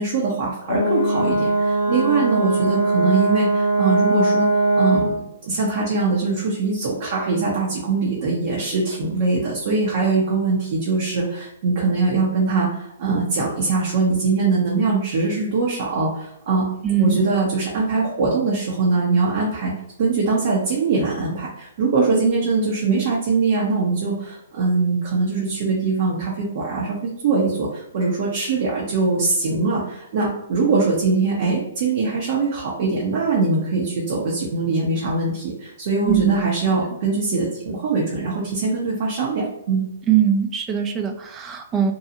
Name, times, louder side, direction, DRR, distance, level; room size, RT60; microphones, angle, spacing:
voice 1, 0.0-4.5 4.8-16.7 17.0-19.7 20.0-27.0 27.2-39.8, right 4 dB, 50° right, -4 dB, 0.8 m, -22 dB
Brass instrument, 0.7-5.2, right 2 dB, 60° left, 0.7 m, -20 dB
voice 2, 16.8-17.2 36.1-36.3 40.1-41.9, right 9 dB, 20° right, 4 dB, 0.4 m, -21 dB
2.7 x 2.3 x 2.7 m, 0.76 s
hypercardioid pair, 130°, 0 cm